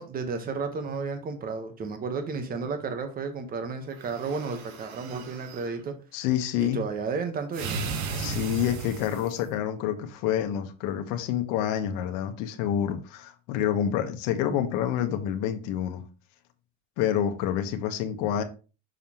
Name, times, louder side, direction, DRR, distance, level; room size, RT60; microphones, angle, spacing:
voice 1, 0.0-5.9 6.6-7.9, right 4 dB, 25° right, 7 dB, 1.1 m, -32 dB
sound 1, 3.9-5.7 7.5-9.5, right 4 dB, 70° right, 1.3 m, -35 dB
voice 2, 6.1-6.8 8.1-16.0 17.0-18.4, left 10 dB, 70° left, 6 dB, 1.2 m, -28 dB
6.4 x 5.4 x 3.0 m, 0.33 s
cardioid pair, 140°, 33 cm